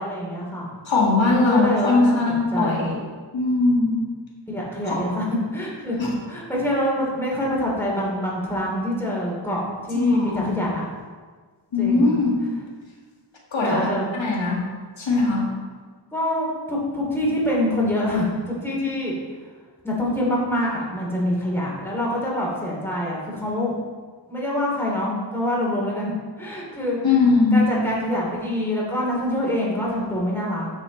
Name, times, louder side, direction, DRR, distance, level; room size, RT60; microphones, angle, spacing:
voice 1, 0.0-0.7 1.3-2.9 4.5-5.3 5.5-6.0 6.3-9.6 9.9-10.8 11.8-12.2 13.6-14.0 16.1-19.1 19.8-23.7 24.3-26.1 26.4-27.0 27.5-30.7, left 1 dB, 5° left, -5 dB, 2.8 m, -25 dB
voice 2, 0.9-3.0 3.3-4.1 4.8-5.0 6.0-6.1 9.9-10.6 11.7-12.4 13.5-13.9 14.1-14.6 15.0-15.5 27.0-27.7, left 3 dB, 80° left, -3 dB, 1.9 m, -20 dB
9.7 x 6.5 x 4.0 m, 1.5 s
wide cardioid pair, 90°, 45 cm